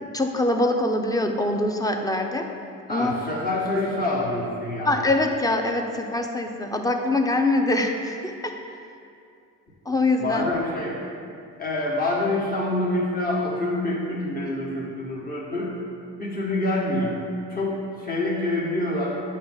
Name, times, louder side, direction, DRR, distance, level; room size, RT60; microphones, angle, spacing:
voice 1, 0.0-2.5 2.9-3.1 4.9-8.5 9.9-10.4, left 2 dB, 10° left, 4 dB, 0.7 m, -24 dB
voice 2, 2.9-5.0 10.2-11.0 11.6-15.7 16.2-17.2 17.5-19.2, left 2 dB, 30° left, -5 dB, 1.6 m, -26 dB
8.1 x 3.2 x 6.3 m, 2.5 s
cardioid pair, 90°, 30 cm